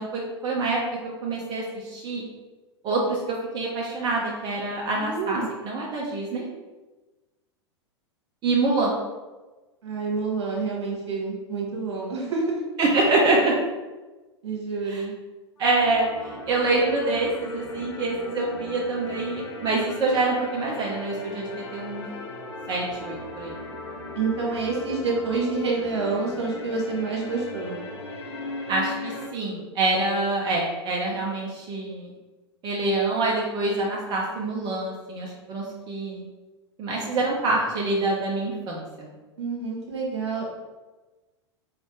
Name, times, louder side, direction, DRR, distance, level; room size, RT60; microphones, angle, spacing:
voice 1, 0.0-2.2 2.8-6.4 8.4-8.9 12.8-13.6 14.8-15.1 15.6-22.1 22.7-23.5 28.7-32.1 32.6-36.2 36.8-39.1, right 2 dB, 25° right, -3 dB, 0.7 m, -26 dB
voice 2, 4.9-5.5 9.8-12.6 14.4-15.1 24.1-27.8 39.4-40.5, right 4 dB, 65° right, -3 dB, 1.3 m, -28 dB
sound 1, 15.6-29.3, left 2 dB, 70° left, 0.7 m, -38 dB
4.0 x 3.2 x 3.1 m, 1.2 s
figure-of-eight pair, 95°, 15 cm